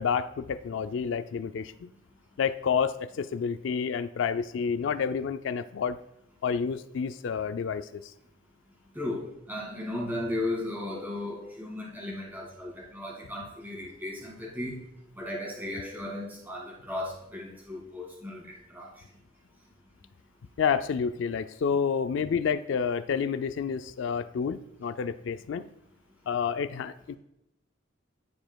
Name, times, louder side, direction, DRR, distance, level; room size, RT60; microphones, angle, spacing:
voice 1, 0.0-1.9 2.4-6.0 6.4-8.0 20.6-25.6 26.3-27.2, left 6 dB, 65° left, 12 dB, 0.3 m, -29 dB
voice 2, 8.9-14.8 15.2-18.9, left 1 dB, 10° right, -3 dB, 2.1 m, -36 dB
15.0 x 5.0 x 2.3 m, 0.83 s
head